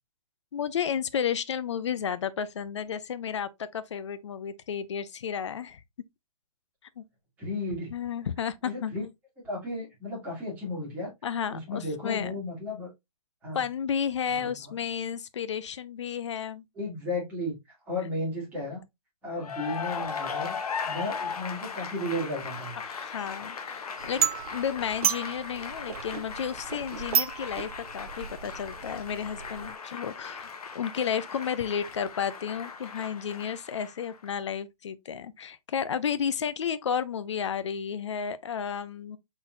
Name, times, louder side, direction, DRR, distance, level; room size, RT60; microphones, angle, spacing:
voice 1, 0.5-5.8 7.0-7.1 7.9-8.9 11.2-12.3 13.5-16.6 22.8-24.2 24.5-39.2, left 7 dB, 50° left, 0.5 m, -32 dB
voice 2, 7.4-7.9 8.6-9.0 9.4-11.1 11.5-12.9 13.4-13.6 14.4-14.7 16.8-17.5 17.9-18.8 19.2-20.6 20.8-22.8, left 1 dB, 10° right, 2.0 m, -34 dB
Cheering / Applause, 19.3-34.3, left 6 dB, 75° left, 0.9 m, -38 dB
sound 1, 24.0-29.8, right 9 dB, 70° right, 0.4 m, -33 dB
4.0 x 4.0 x 2.5 m
hypercardioid pair, 165°, 19 cm